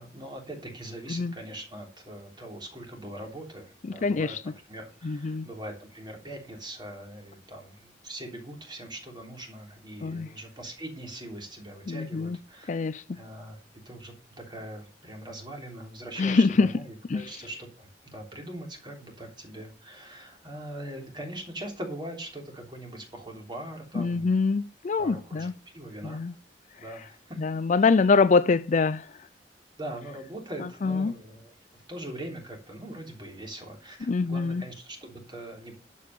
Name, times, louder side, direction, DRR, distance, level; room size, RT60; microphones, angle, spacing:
voice 1, 0.0-12.8 13.1-13.6 13.8-14.1 14.5-24.3 25.0-26.2 26.7-27.4 27.7-27.8 29.8-31.5 31.9-35.8, right 1 dB, 25° right, 3.3 m, -41 dB
voice 2, 3.8-4.5 5.0-5.5 10.0-10.3 11.9-12.4 12.7-13.2 16.2-16.7 17.1-17.3 23.9-25.5 26.0-26.3 27.4-29.1 30.6-31.1 34.0-34.6, left 4 dB, 45° left, 0.4 m, -25 dB
11.5 x 5.5 x 6.6 m
head